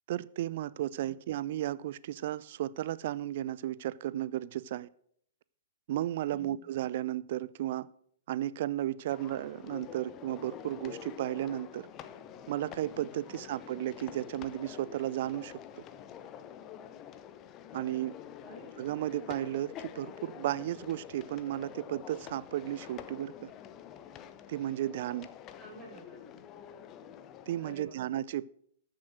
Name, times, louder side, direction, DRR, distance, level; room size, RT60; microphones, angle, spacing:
voice 1, 0.1-4.9 5.9-7.9 8.3-11.9 12.5-15.8 17.7-18.2 18.8-23.5 24.5-25.3 27.5-28.5, right 13 dB, 45° right, 0.4 m, -34 dB
voice 2, 6.3-6.7 13.2-13.4 18.4-18.6 25.6-26.6 27.6-28.0, equal, 5° right, 6.0 m, -50 dB
sound 1, 9.1-27.7, left 9 dB, 25° left, 0.8 m, -47 dB
13.5 x 7.6 x 6.2 m
figure-of-eight pair, 110°, 0 cm